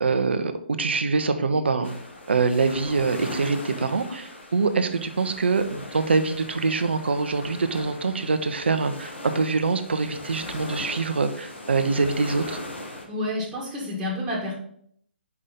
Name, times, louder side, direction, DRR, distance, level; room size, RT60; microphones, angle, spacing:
voice 1, 0.0-1.9 2.3-12.6, right 4 dB, 70° right, 9 dB, 0.8 m, -24 dB
sound 1, 1.8-13.1, left 2 dB, 80° left, 1.5 m, -39 dB
voice 2, 13.1-14.5, left 1 dB, 10° right, -5 dB, 1.7 m, -29 dB
5.7 x 4.9 x 4.0 m, 0.64 s
figure-of-eight pair, 135°, 6 cm